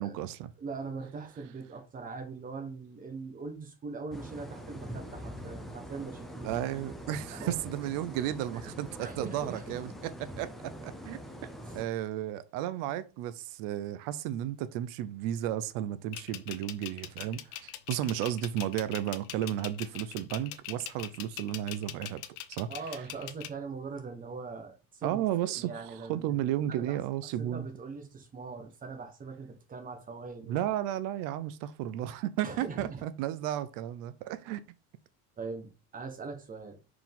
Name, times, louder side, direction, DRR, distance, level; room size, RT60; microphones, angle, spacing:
voice 1, 0.0-0.5 6.4-9.9 10.2-11.5 11.7-22.2 22.5-22.7 25.0-27.7 30.5-34.6, right 12 dB, 60° right, 0.6 m, -33 dB
voice 2, 0.6-6.5 7.1-7.6 8.5-9.8 11.7-11.8 22.7-26.4 26.7-27.0 27.4-30.5 32.4-33.0 35.4-36.8, right 4 dB, 20° right, 1.2 m, -41 dB
sound 1, 4.1-11.8, equal, ahead, 0.6 m, -44 dB
sound 2, 16.1-23.5, left 13 dB, 55° left, 0.8 m, -41 dB
5.7 x 4.9 x 3.6 m
cardioid pair, 170°, 38 cm